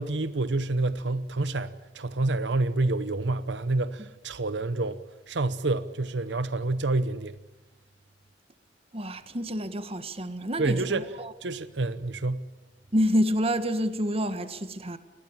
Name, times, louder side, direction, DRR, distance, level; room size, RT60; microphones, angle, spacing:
voice 1, 0.0-5.0 5.3-7.4 10.6-11.0 11.4-12.4, right 2 dB, 75° right, 0.9 m, -28 dB
voice 2, 8.9-11.3 12.9-15.0, equal, 35° right, 1.7 m, -28 dB
30.0 x 21.0 x 7.4 m
head